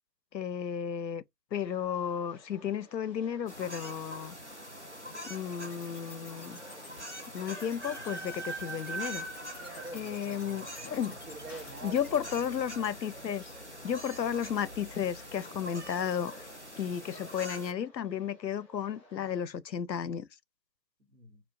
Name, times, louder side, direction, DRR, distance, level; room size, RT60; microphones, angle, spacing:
voice 1, 0.3-1.2 1.5-4.4 5.3-6.6 7.3-9.3 9.9-11.1 11.8-13.5 13.8-16.3 16.8-20.3, left 8 dB, 85° left, 0.6 m, -33 dB
sound 1, 1.5-19.4, equal, 25° left, 2.1 m, -55 dB
sound 2, 3.5-17.7, right 1 dB, 45° right, 0.5 m, -43 dB
sound 3, 5.6-12.6, left 3 dB, 60° left, 1.1 m, -52 dB
voice 2, 9.6-11.0 11.3-12.5 21.1-21.4, right 2 dB, 65° right, 1.2 m, -47 dB
4.5 x 2.3 x 2.4 m
figure-of-eight pair, 175°, 50 cm